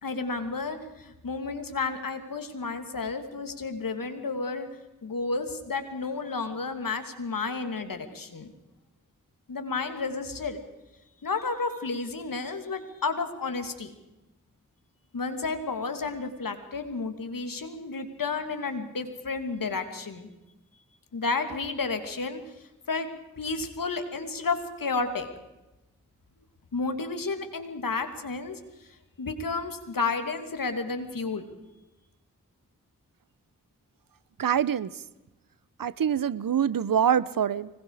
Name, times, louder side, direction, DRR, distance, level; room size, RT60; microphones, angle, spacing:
voice 1, 0.0-4.7 5.0-8.5 9.5-10.6 11.2-13.9 15.1-20.3 21.1-22.4 22.9-23.1 23.4-25.3 26.7-28.6 29.2-31.4, left 4 dB, 80° left, 7 dB, 2.8 m, -31 dB
voice 2, 34.4-34.9 35.8-37.7, right 8 dB, 80° right, 19 dB, 0.9 m, -25 dB
25.0 x 21.0 x 5.0 m, 1.0 s
cardioid pair, 50°, 33 cm